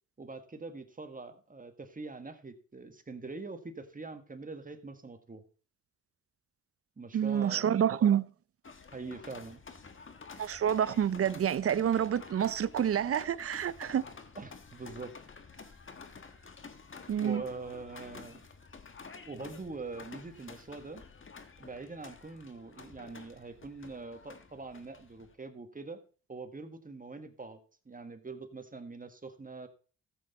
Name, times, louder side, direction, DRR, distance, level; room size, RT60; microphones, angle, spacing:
voice 1, 0.2-5.4 7.0-7.9 8.9-9.6 14.3-15.1 17.2-18.5 19.3-21.0 21.6-26.0 26.3-27.6 27.8-29.7, right 3 dB, 25° right, 1.5 m, -43 dB
voice 2, 7.1-8.3 10.4-14.0 17.1-17.4, right 9 dB, 45° right, 0.6 m, -28 dB
sound 1, 8.6-25.3, left 4 dB, 40° left, 1.5 m, -50 dB
13.5 x 7.9 x 4.1 m
cardioid pair, 75°, 32 cm